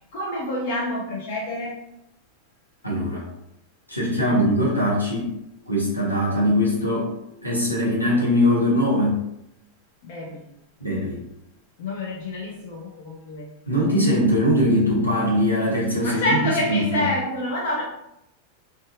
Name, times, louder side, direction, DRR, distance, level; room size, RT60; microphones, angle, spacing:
voice 1, 0.1-1.8 4.3-4.4 10.0-10.4 11.8-13.5 16.0-17.8, left 1 dB, 50° left, -1 dB, 0.4 m, -27 dB
voice 2, 2.8-3.3 3.9-5.3 5.7-7.1 7.4-9.2 10.8-11.2 13.7-17.1, equal, 85° left, -5 dB, 0.8 m, -21 dB
2.6 x 2.3 x 2.5 m, 0.82 s
figure-of-eight pair, 90°, 0 cm